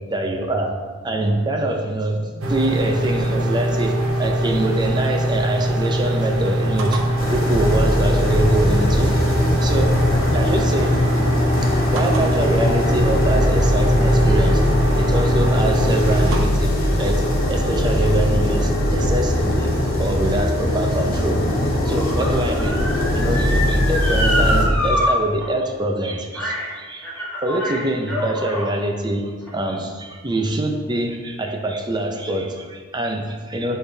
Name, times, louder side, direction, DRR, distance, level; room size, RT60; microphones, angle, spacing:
voice 1, 0.1-0.7 1.0-7.0 7.3-9.2 9.6-9.9 10.3-10.9 11.6-17.2 17.5-19.7 20.0-21.4 21.8-22.8 23.1-33.8, right 1 dB, 20° right, 3 dB, 0.5 m, -24 dB
sound 1, 2.4-16.4, equal, 85° right, 0.9 m, -22 dB
sound 2, 7.2-24.7, left 1 dB, 45° left, 1.0 m, -20 dB
Motor vehicle (road) / Siren, 20.2-25.1 25.4-25.5 26.3-26.7 27.0-28.7 29.4-29.5, equal, 5° left, 1.8 m, -26 dB
9.9 x 3.9 x 2.7 m, 1.5 s
head